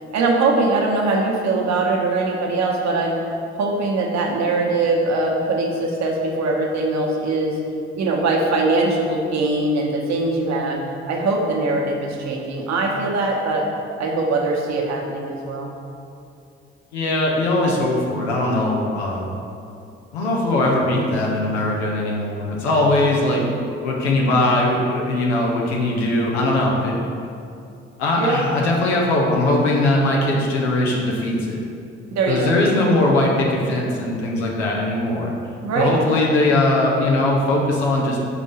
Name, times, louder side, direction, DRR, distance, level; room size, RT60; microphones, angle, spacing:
voice 1, 0.1-3.2 3.6-7.6 8.0-10.8 11.1-13.7 14.0-15.7 28.1-28.4 32.1-32.5 35.6-35.9, right 3 dB, 55° right, 0 dB, 1.2 m, -21 dB
voice 2, 16.9-19.3 20.1-23.4 23.8-26.9 28.0-31.6 32.3-35.3 35.7-38.2, left 2 dB, 85° left, -2 dB, 0.8 m, -20 dB
6.1 x 3.6 x 5.7 m, 2.5 s
hypercardioid pair, 50°, 32 cm